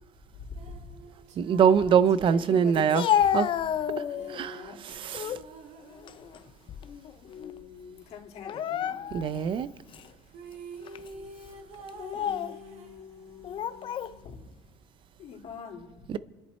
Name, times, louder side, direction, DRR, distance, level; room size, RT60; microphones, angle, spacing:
voice 1, 0.3-0.9 2.2-3.1 4.1-4.8 7.2-9.0 12.1-14.4 15.2-15.9, left 6 dB, 55° left, 3.2 m, -44 dB
sound 1, 0.5-6.7 10.0-10.1 10.3-13.5, right 4 dB, 60° right, 1.5 m, -48 dB
voice 2, 1.4-3.0 3.3-3.5 4.3-5.4 9.1-9.7 16.1-16.2, right 7 dB, 40° right, 0.6 m, -23 dB
Speech, 2.7-4.4 4.9-5.5 5.9-7.1 7.4-7.6 8.4-9.4 9.9-10.1 10.9-11.1 11.9-12.6 13.4-14.1, left 9 dB, 40° left, 0.6 m, -30 dB
28.5 x 10.5 x 4.3 m
cardioid pair, 135°, 13 cm